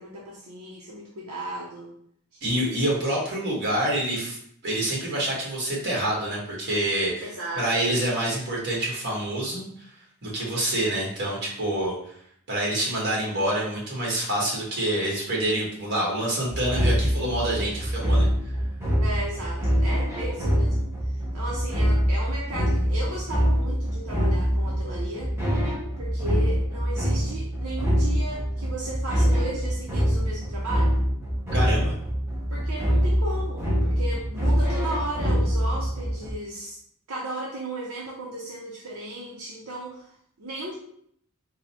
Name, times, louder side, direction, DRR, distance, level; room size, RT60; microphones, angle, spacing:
voice 1, 0.0-1.9 2.3-2.4 2.8-3.0 7.2-7.8 19.0-25.3 26.0-31.0 32.5-36.8 37.1-40.7, right 1 dB, 75° right, -4 dB, 0.7 m, -35 dB
voice 2, 2.4-4.4 4.6-7.2 7.5-9.9 10.2-11.9 12.5-18.3 31.5-31.9, right 1 dB, 50° right, -3 dB, 1.4 m, -27 dB
sound 1, 16.5-36.3, equal, 10° right, 0.7 m, -24 dB
3.8 x 2.1 x 4.2 m, 0.66 s
head